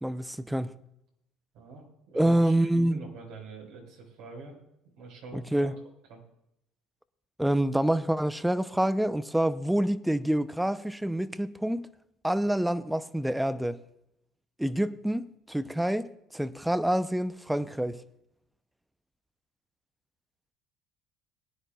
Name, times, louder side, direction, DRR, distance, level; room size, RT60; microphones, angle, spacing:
voice 1, 0.0-0.8 2.1-3.0 5.3-5.8 7.4-11.9 12.2-13.8 14.6-18.0, right 1 dB, 5° right, 0.7 m, -27 dB
voice 2, 1.5-4.5 5.0-5.7 6.1-6.2, right 3 dB, 70° right, 4.9 m, -45 dB
21.0 x 10.0 x 2.4 m
hypercardioid pair, 75°, 0 cm